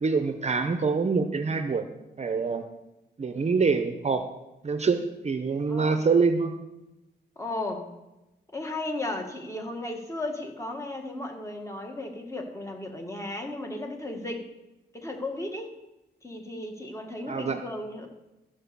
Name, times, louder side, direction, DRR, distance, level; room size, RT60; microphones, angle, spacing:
voice 1, 0.0-1.9 2.2-2.6 3.2-4.2 4.6-6.5 17.3-17.6, right 4 dB, 40° right, 7 dB, 0.7 m, -25 dB
voice 2, 5.7-6.0 7.3-7.9 8.5-14.4 14.9-15.7 16.2-18.1, left 2 dB, 15° left, 3 dB, 1.7 m, -35 dB
14.0 x 5.3 x 6.9 m, 0.97 s
wide cardioid pair, 120°, 18 cm